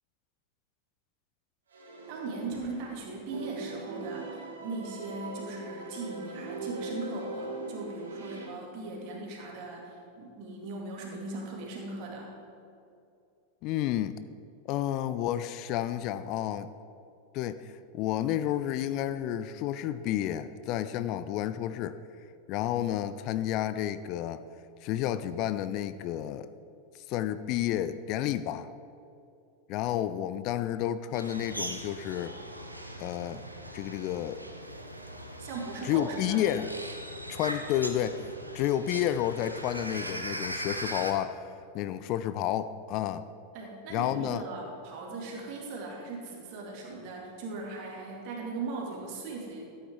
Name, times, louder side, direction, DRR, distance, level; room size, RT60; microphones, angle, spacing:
sound 1, 1.7-3.0 3.3-8.5, right 2 dB, 70° right, 1.7 m, -40 dB
voice 1, 2.1-12.3 35.4-36.5 43.5-49.7, right 3 dB, 45° right, -1 dB, 2.3 m, -39 dB
voice 2, 13.6-14.2 14.7-16.7 17.3-22.0 22.5-24.4 24.8-26.5 26.9-28.7 29.7-32.4 33.0-33.4 33.7-34.4 35.8-36.7 37.3-38.2 38.5-41.4 41.7-43.3 43.9-44.4, left 11 dB, 40° left, 13 dB, 0.3 m, -30 dB
sound 2, 31.1-41.1, right 1 dB, 85° right, 0.8 m, -40 dB
13.0 x 8.6 x 3.7 m, 2.6 s
figure-of-eight pair, 90°, 0 cm